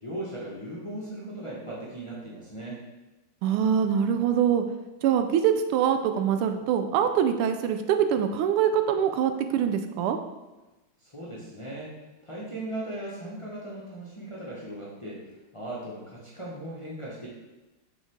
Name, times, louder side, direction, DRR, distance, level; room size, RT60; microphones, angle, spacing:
voice 1, 0.0-2.8 11.0-11.9 12.2-15.2 15.5-17.3, right 1 dB, 25° left, -6 dB, 0.6 m, -38 dB
voice 2, 3.4-4.6 5.0-10.2, right 8 dB, 85° right, 8 dB, 1.5 m, -24 dB
7.1 x 3.9 x 3.5 m, 1.1 s
omnidirectional pair, 2.4 m